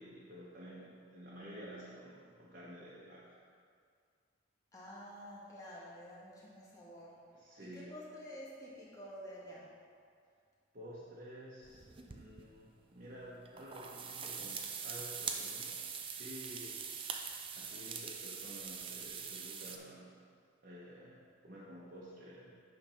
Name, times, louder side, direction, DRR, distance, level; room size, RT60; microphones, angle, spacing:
voice 1, 0.0-3.4 7.4-7.9 10.7-15.8 16.1-16.7 17.5-20.1 20.6-22.6, equal, 50° right, -7 dB, 1.1 m, -51 dB
voice 2, 4.7-7.2 7.6-9.7, equal, 15° left, -7 dB, 1.5 m, -50 dB
sound 1, 11.6-12.4 13.5-19.8, right 6 dB, 25° right, 0.4 m, -43 dB
8.9 x 3.5 x 5.6 m, 2.1 s
head